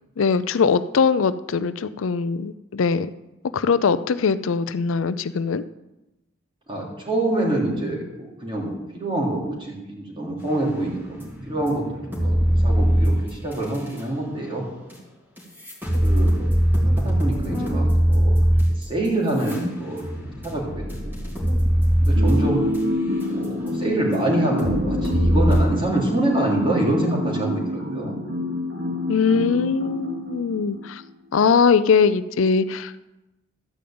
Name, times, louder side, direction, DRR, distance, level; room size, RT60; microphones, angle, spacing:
voice 1, 0.2-3.1 3.5-5.6 29.1-31.0 31.3-33.0, left 5 dB, 90° left, 14 dB, 0.5 m, -21 dB
voice 2, 6.7-14.7 16.0-16.3 17.0-21.2 22.0-22.7 23.3-28.1, right 1 dB, 25° right, -3 dB, 3.1 m, -26 dB
sound 1, 10.7-14.0 14.9-15.0 15.4-23.7 24.1-24.2 24.6-25.6, equal, 10° right, 2.9 m, -21 dB
sound 2, 22.1-30.9, left 1 dB, 80° right, 2.7 m, -28 dB
13.0 x 5.1 x 8.6 m, 0.99 s
head